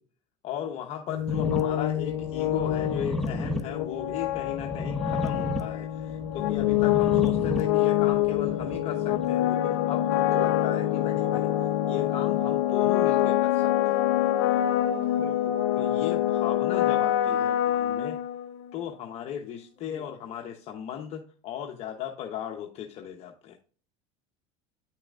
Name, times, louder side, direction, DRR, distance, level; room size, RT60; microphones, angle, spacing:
voice 1, 0.4-14.0 15.1-15.2 15.8-18.2 18.7-23.6, left 9 dB, 45° left, 2 dB, 0.9 m, -37 dB
sound 1, 1.1-18.7, left 13 dB, 80° left, 0.6 m, -26 dB
voice 2, 1.3-1.7 11.0-11.4 15.1-16.2 19.8-20.1, left 5 dB, 20° left, -2 dB, 3.2 m, -45 dB
sound 2, 1.3-9.2, left 2 dB, ahead, 0.8 m, -34 dB
Singing / Glass, 10.2-16.8, right 13 dB, 65° right, 0.5 m, -42 dB
9.7 x 5.8 x 2.4 m, 0.40 s
supercardioid pair, 135°, 15 cm